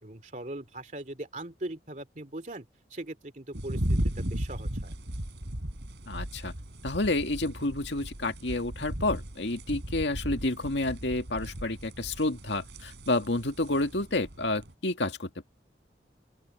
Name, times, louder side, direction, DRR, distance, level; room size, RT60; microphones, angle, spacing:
voice 1, 0.0-4.9, right 1 dB, 45° right, 2.8 m, -40 dB
sound 1, 3.5-14.7, right 1 dB, 80° right, 3.6 m, -36 dB
voice 2, 6.1-6.5 6.8-15.4, left 2 dB, 90° left, 2.1 m, -30 dB
open air
head